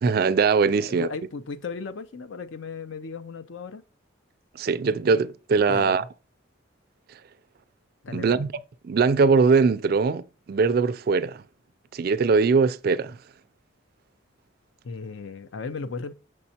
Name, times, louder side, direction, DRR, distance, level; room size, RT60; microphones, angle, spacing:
voice 1, 0.0-1.1 4.6-6.0 8.1-8.5 8.8-11.4 11.9-13.2, right 4 dB, 50° right, 0.3 m, -21 dB
voice 2, 0.8-3.8 5.7-6.1 8.0-8.5 14.8-16.1, left 4 dB, 70° left, 0.5 m, -36 dB
6.3 x 5.3 x 2.8 m
head